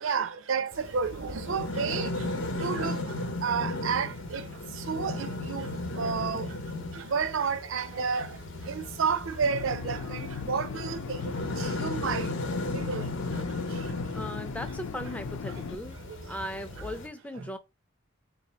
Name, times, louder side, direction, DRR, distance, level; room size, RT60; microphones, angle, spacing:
voice 1, 0.0-2.1 2.6-3.0 3.4-4.5 4.9-5.7 6.0-6.5 7.1-8.3 8.7-11.2 11.6-12.3 12.7-13.0, right 6 dB, 70° right, 0.5 m, -30 dB
sound 1, 0.7-17.1, left 2 dB, 60° left, 0.8 m, -36 dB
sound 2, 9.4-15.8, left 6 dB, 90° left, 0.4 m, -37 dB
voice 2, 14.1-16.0 16.2-17.6, left 1 dB, 5° left, 0.4 m, -38 dB
3.3 x 2.7 x 4.1 m
head